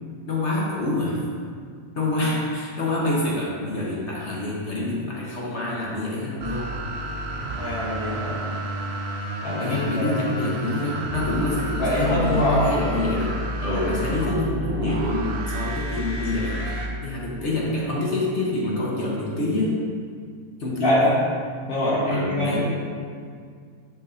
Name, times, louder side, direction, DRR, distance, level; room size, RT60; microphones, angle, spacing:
voice 1, 0.3-1.2 1.9-6.8 9.6-16.6 17.0-19.8 20.6-21.2 22.1-22.6, left 2 dB, 55° left, -5 dB, 1.4 m, -26 dB
sound 1, 6.4-16.9, equal, 55° right, 1.0 m, -30 dB
voice 2, 7.5-8.4 9.4-10.1 11.8-12.7 13.7-13.9 20.8-21.0 21.7-22.6, left 1 dB, 85° left, -9 dB, 1.9 m, -24 dB
11.0 x 5.4 x 2.7 m, 2.1 s
omnidirectional pair, 1.5 m